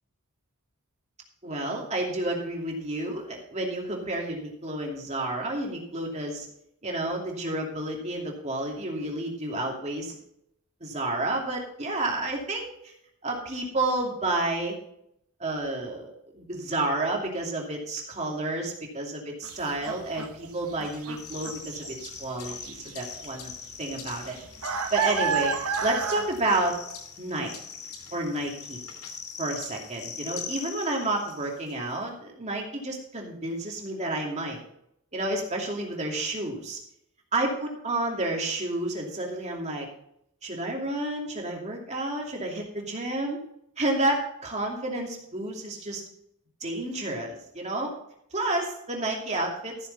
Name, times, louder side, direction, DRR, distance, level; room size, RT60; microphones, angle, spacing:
voice 1, 1.4-6.5 6.8-10.2 10.8-12.9 13.2-14.8 15.4-23.5 23.8-24.4 24.7-25.6 25.8-26.8 27.2-27.5 28.1-28.8 29.4-34.6 35.1-36.8 37.3-39.9 40.4-43.4 43.8-46.0 46.6-47.9 48.3-49.9, right 2 dB, 30° right, 0 dB, 2.7 m, -30 dB
sound 1, 19.4-19.5 19.9-22.2 22.5-22.9 23.2-23.3 23.7-26.8, right 6 dB, 80° right, 1.1 m, -30 dB
sound 2, 20.8-31.7, left 6 dB, 90° left, 2.6 m, -42 dB
14.5 x 7.1 x 4.2 m, 0.73 s
head